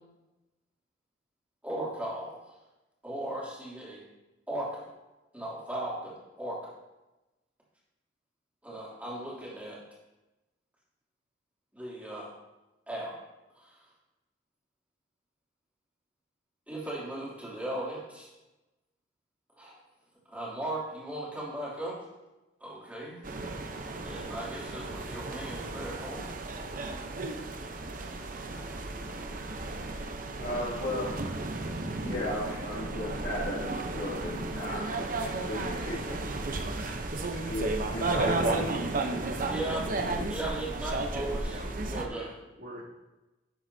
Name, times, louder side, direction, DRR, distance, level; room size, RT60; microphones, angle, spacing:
voice 1, 1.6-2.5 3.0-4.0 4.5-4.9 5.3-6.7 8.6-9.8 11.7-12.3 12.9-13.1 13.6-13.9 16.7-18.3 19.6-19.7 20.3-22.0 22.6-23.3 23.7-26.3 39.5-42.3, right 1 dB, 10° right, -7 dB, 2.8 m, -37 dB
sound 1, 23.2-42.1, right 2 dB, 50° right, 0.8 m, -33 dB
voice 2, 30.4-31.2 32.0-35.0 35.4-36.2 36.5-37.0 37.5-38.7 39.0-39.1, left 1 dB, 65° left, -8 dB, 2.3 m, -36 dB
voice 3, 35.4-36.0 40.0-40.2 41.5-42.8, equal, 80° right, -6 dB, 2.5 m, -45 dB
11.0 x 7.7 x 2.8 m, 1.0 s
head